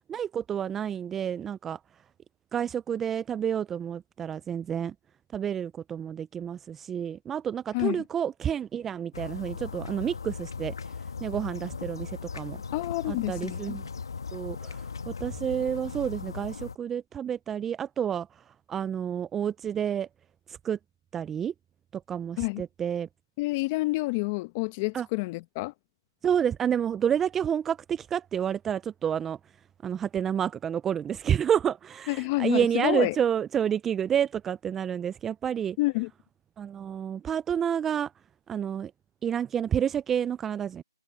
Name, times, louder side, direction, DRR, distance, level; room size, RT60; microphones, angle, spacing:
voice 1, 0.1-1.8 2.5-4.9 5.3-10.7 11.2-12.6 13.1-13.9 14.3-20.1 20.5-20.8 21.1-21.5 21.9-23.1 24.9-25.1 26.2-29.4 29.8-35.8 36.6-38.1 38.5-38.9 39.2-40.8, right 8 dB, 10° right, 0.3 m, -29 dB
sound 1, 9.1-16.8, left 5 dB, 65° left, 1.4 m, -38 dB
voice 2, 12.7-13.8 22.4-22.6 23.4-25.7 32.1-33.2 35.8-36.1, left 22 dB, 20° left, 0.9 m, -28 dB
hypercardioid pair, 160°, 3 cm